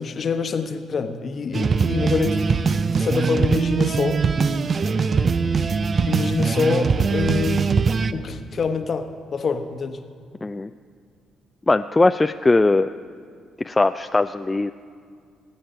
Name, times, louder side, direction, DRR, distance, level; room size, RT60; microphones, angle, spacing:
voice 1, 0.0-2.6 3.0-4.2 6.1-7.7 8.1-10.0, left 5 dB, 45° left, 8 dB, 1.0 m, -25 dB
sound 1, 1.5-8.1, right 5 dB, 40° right, 0.5 m, -21 dB
voice 2, 11.7-12.9 13.6-14.7, left 2 dB, 20° left, 10 dB, 0.3 m, -19 dB
19.5 x 8.7 x 5.7 m, 2.1 s
hypercardioid pair, 50°, 0 cm